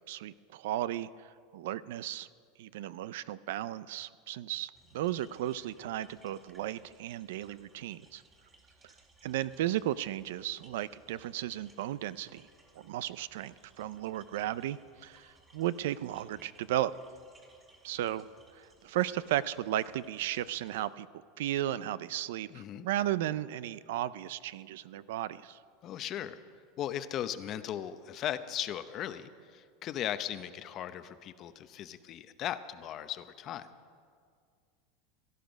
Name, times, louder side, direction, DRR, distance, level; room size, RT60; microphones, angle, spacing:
voice 1, 0.1-2.3 2.6-8.2 9.2-12.5 12.8-16.9 17.8-18.3 18.5-21.1 21.4-25.6, right 13 dB, 80° right, 17 dB, 0.4 m, -35 dB
sound 1, 4.7-20.9, right 2 dB, 20° right, 2.2 m, -63 dB
voice 2, 22.5-22.9 25.8-26.4 26.8-33.7, left 11 dB, 40° left, 12 dB, 0.7 m, -37 dB
17.0 x 12.5 x 5.2 m, 2.1 s
supercardioid pair, 135°, 0 cm